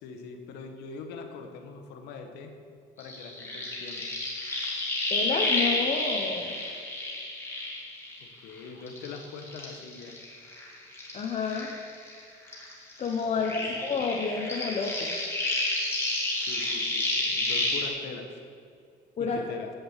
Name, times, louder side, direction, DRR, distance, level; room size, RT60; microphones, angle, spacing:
voice 1, 0.0-2.5 3.0-4.1 8.2-10.1 13.4-13.8 16.5-18.3 19.2-19.7, left 5 dB, 90° left, 5 dB, 1.1 m, -42 dB
sound 1, 3.0-8.5 8.9-12.2 12.5-17.9, left 2 dB, 15° left, 2.1 m, -30 dB
voice 2, 5.1-6.6 11.1-11.7 13.0-15.2 19.2-19.4, left 5 dB, 40° left, 0 dB, 0.9 m, -30 dB
8.3 x 6.7 x 7.3 m, 2.3 s
cardioid pair, 110°, 17 cm